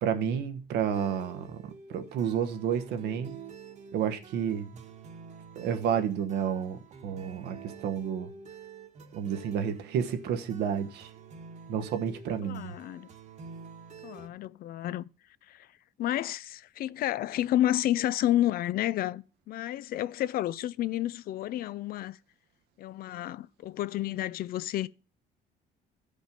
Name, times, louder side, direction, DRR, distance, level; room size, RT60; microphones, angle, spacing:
voice 1, 0.0-3.4 3.9-4.8 5.6-7.6 7.8-8.3 9.1-11.1 11.7-12.7, right 8 dB, 80° right, 1.1 m, -30 dB
sound 1, 0.9-14.3, right 5 dB, 45° right, 1.3 m, -48 dB
voice 2, 12.4-13.1 14.0-15.1 15.5-15.7 16.0-22.2 22.8-24.9, left 13 dB, 60° left, 0.4 m, -30 dB
13.5 x 5.3 x 5.2 m
cardioid pair, 110°, 17 cm